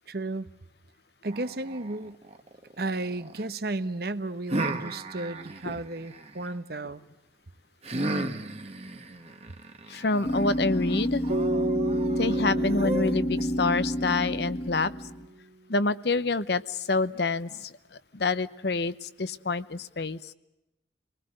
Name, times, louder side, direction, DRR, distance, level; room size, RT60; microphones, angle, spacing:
voice 1, 0.1-0.5 1.2-2.2 2.8-7.0, right 2 dB, 55° right, 12 dB, 1.0 m, -33 dB
old ninja grunt, 1.2-3.5 4.5-6.6 7.8-13.4, right 2 dB, 35° right, 1.3 m, -36 dB
voice 2, 9.9-11.2 12.1-14.9 15.7-20.3, left 3 dB, 65° left, 14 dB, 0.8 m, -27 dB
sound 1, 10.2-15.2, equal, 25° left, 1.4 m, -29 dB
sound 2, 11.3-15.5, right 1 dB, 85° right, 2.5 m, -33 dB
28.5 x 20.0 x 7.7 m, 0.95 s
head